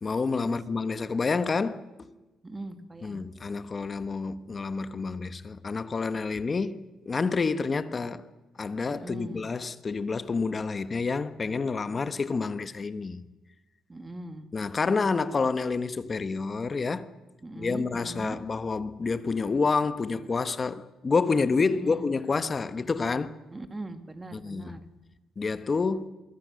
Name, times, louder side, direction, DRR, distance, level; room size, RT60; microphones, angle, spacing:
voice 1, 0.0-2.1 3.0-8.2 8.6-13.2 14.5-17.1 17.6-23.3 24.3-24.7 25.4-26.1, left 4 dB, 30° left, 1.2 m, -28 dB
voice 2, 2.4-3.2 8.9-9.5 13.9-14.5 17.4-18.4 21.6-22.1 23.5-24.8, right 2 dB, 20° right, 2.3 m, -40 dB
25.5 x 23.0 x 6.5 m
cardioid pair, 110°, 0 cm